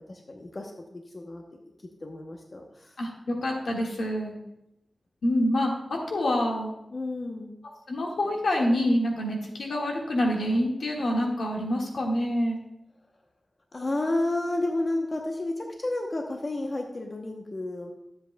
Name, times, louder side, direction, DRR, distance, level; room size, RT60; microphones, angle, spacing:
voice 1, 0.0-1.4 2.0-3.0 6.9-7.5 13.7-17.9, left 2 dB, 40° left, 1 dB, 0.9 m, -31 dB
voice 2, 3.0-4.3 5.2-6.7 7.9-12.6, left 1 dB, 85° left, -1 dB, 1.8 m, -26 dB
13.0 x 7.7 x 2.3 m, 0.85 s
wide cardioid pair, 110°, 0 cm